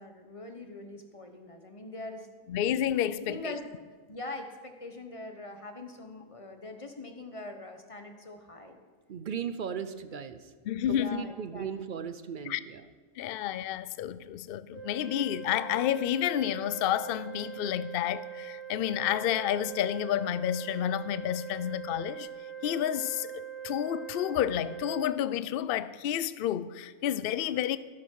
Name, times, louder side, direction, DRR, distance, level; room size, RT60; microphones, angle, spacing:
voice 1, 0.0-2.3 2.5-2.6 3.1-3.7 4.1-8.8 10.8-11.7, left 2 dB, 25° left, 1.2 m, -43 dB
voice 2, 2.5-3.5 10.7-11.3 12.5-12.6 13.2-22.3 22.6-27.8, left 11 dB, 65° left, 0.6 m, -30 dB
voice 3, 9.1-10.5 10.9-12.8, right 7 dB, 55° right, 0.6 m, -37 dB
Organ, 14.7-25.8, right 9 dB, 30° right, 3.2 m, -42 dB
16.0 x 10.5 x 4.7 m
omnidirectional pair, 1.4 m